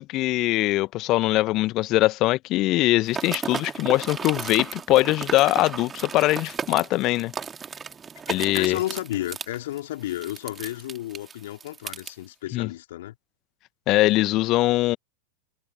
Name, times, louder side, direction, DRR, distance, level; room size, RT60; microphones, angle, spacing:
voice 1, 0.0-7.3 8.3-8.8 12.5-12.7 13.9-15.0, left 18 dB, 40° left, 1.2 m, -22 dB
sound 1, 3.1-12.1, right 6 dB, 20° right, 3.1 m, -35 dB
voice 2, 8.3-13.2, left 14 dB, 55° left, 4.4 m, -32 dB
figure-of-eight pair, 90°, 0 cm